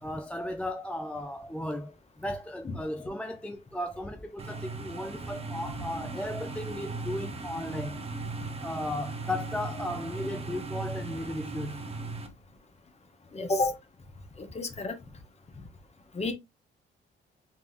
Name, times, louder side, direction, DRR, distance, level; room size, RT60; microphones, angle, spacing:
voice 1, 0.0-8.0 8.6-11.8 13.4-13.6, left 1 dB, 5° left, 0.4 m, -35 dB
sound 1, 4.4-12.3, right 3 dB, 30° right, 0.9 m, -38 dB
voice 2, 13.3-13.7 14.4-15.0 16.1-16.3, left 2 dB, 35° left, 1.1 m, -30 dB
3.6 x 3.4 x 3.1 m
cardioid pair, 90°, 20 cm